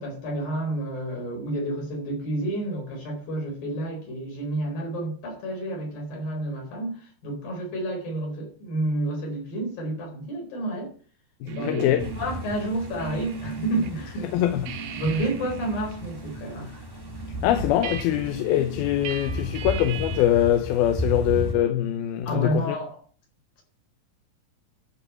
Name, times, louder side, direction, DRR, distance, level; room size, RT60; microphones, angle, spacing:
voice 1, 0.0-10.9 11.4-14.3 14.9-16.9 22.3-23.0, right 1 dB, 65° left, 6.0 m, -30 dB
voice 2, 11.4-12.0 14.3-14.8 17.4-22.8, left 11 dB, 85° left, 2.7 m, -23 dB
sound 1, 11.5-13.9 14.3-20.4, right 7 dB, 75° right, 2.9 m, -38 dB
sound 2, 12.0-21.5, left 1 dB, 20° right, 0.6 m, -35 dB
12.0 x 5.3 x 8.3 m
omnidirectional pair, 4.3 m